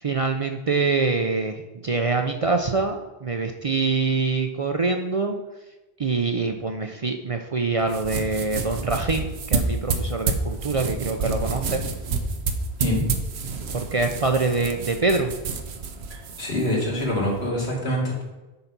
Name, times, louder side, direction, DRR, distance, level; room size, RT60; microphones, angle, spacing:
voice 1, 0.0-5.4 6.0-11.8 13.7-15.3, right 4 dB, 45° right, 4 dB, 0.5 m, -25 dB
sound 1, 7.8-17.5, right 4 dB, 85° right, 1.1 m, -29 dB
voice 2, 16.1-18.2, left 1 dB, 80° left, -3 dB, 2.7 m, -25 dB
9.4 x 4.0 x 5.9 m, 1.1 s
omnidirectional pair, 1.1 m